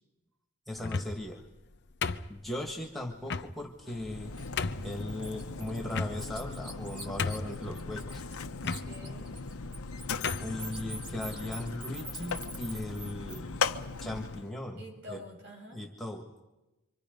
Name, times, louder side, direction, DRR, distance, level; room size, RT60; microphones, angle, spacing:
voice 1, 0.7-1.4 2.3-4.3 4.8-8.2 10.4-13.6 14.0-14.8 15.1-15.2 15.7-16.4, left 1 dB, ahead, 1 dB, 1.7 m, -38 dB
sound 1, 0.8-1.3 2.0-2.7 3.3-3.5 4.1-4.2 4.6-4.9 5.9-6.5 6.8-6.9 7.2-7.7 8.6-8.8 9.7-9.8 10.2-10.5, left 4 dB, 50° left, 0.7 m, -33 dB
Mechanisms, 3.8-14.5, left 4 dB, 80° left, 0.9 m, -38 dB
Bird, 4.4-4.5 4.9-8.4 8.6-13.4, right 2 dB, 20° right, 1.8 m, -45 dB
voice 2, 8.6-9.4 14.7-15.8, equal, 55° right, -2 dB, 7.8 m, -48 dB
28.0 x 25.0 x 5.3 m, 1.0 s
head